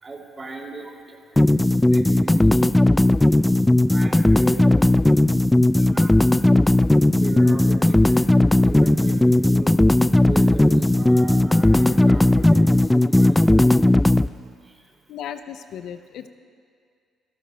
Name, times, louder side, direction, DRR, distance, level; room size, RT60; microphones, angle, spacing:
voice 1, 0.0-2.9 3.9-4.9 5.7-6.6 7.2-13.8 14.6-14.9, right 3 dB, 35° right, 1 dB, 2.6 m, -37 dB
sound 1, 1.4-14.3, left 1 dB, 10° left, 0.3 m, -17 dB
voice 2, 15.1-16.3, left 9 dB, 70° left, 10 dB, 0.5 m, -35 dB
27.5 x 13.5 x 2.3 m, 2.2 s
hypercardioid pair, 60°, 0 cm